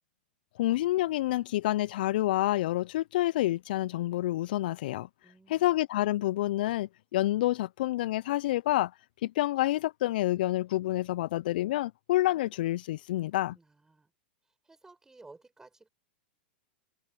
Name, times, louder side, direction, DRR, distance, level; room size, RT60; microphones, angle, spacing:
voice 1, 0.6-5.1 5.5-8.9 9.2-13.6, left 15 dB, 60° left, 0.8 m, -28 dB
voice 2, 5.2-5.7 13.5-14.1 14.6-15.9, right 3 dB, 10° right, 7.9 m, -55 dB
figure-of-eight pair, 100°, 6 cm